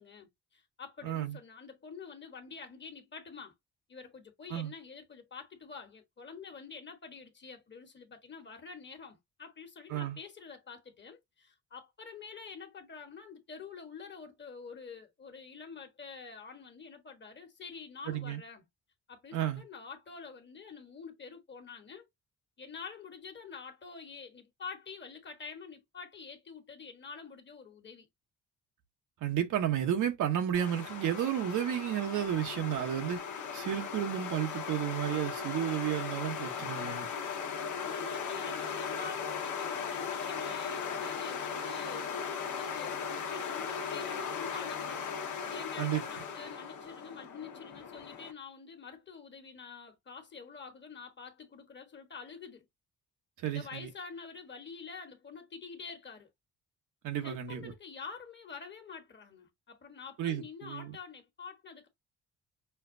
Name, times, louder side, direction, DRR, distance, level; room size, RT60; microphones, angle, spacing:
voice 1, 0.0-3.5 3.9-18.6 19.1-22.1 22.6-28.1 37.8-52.7 53.5-56.3 57.2-61.9, left 5 dB, 35° left, 1.3 m, -47 dB
voice 2, 1.0-1.4 4.5-4.7 9.9-10.2 18.1-18.4 19.3-19.6 29.2-33.2 33.5-37.1 45.8-46.0 53.4-53.9 57.0-57.7 60.2-61.0, right 10 dB, 80° right, 1.0 m, -32 dB
sound 1, 30.5-48.3, left 6 dB, 80° left, 1.1 m, -38 dB
5.7 x 2.3 x 2.6 m
cardioid pair, 90°, 30 cm